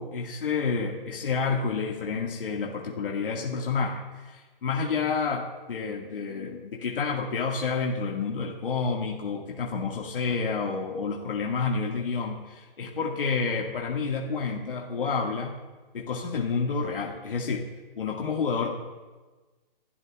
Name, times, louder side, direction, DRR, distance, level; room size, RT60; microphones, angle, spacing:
voice 1, 0.0-15.5 15.9-17.6 18.0-18.7, left 5 dB, 65° left, -1 dB, 1.8 m, -29 dB
27.5 x 12.5 x 2.3 m, 1.3 s
hypercardioid pair, 160°, 29 cm